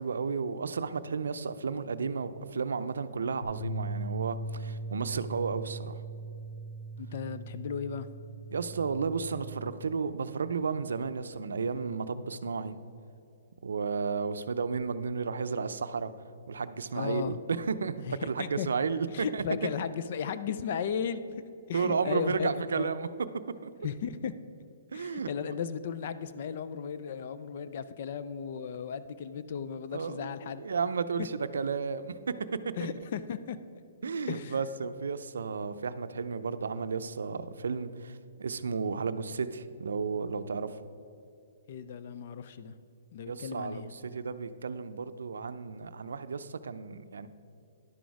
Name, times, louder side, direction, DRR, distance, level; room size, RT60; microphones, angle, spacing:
voice 1, 0.0-6.0 8.5-12.8 13.6-16.1 16.5-19.1 19.3-19.4 21.7-23.1 23.6-23.7 24.9-25.3 29.9-32.4 32.6-32.7 34.0-40.8 43.3-47.3, right 5 dB, 90° right, 12 dB, 0.5 m, -33 dB
sound 1, 3.4-9.7, right 2 dB, 85° left, 1.7 m, -40 dB
voice 2, 7.0-8.1 16.9-17.4 18.1-18.7 19.1-21.2 21.7-22.5 22.8-22.9 23.8-24.3 24.9-30.6 32.8-33.6 34.3-34.5 41.7-42.7 43.1-43.9, left 7 dB, 50° left, 13 dB, 0.4 m, -35 dB
11.0 x 6.3 x 4.7 m, 2.6 s
hypercardioid pair, 155°, 0 cm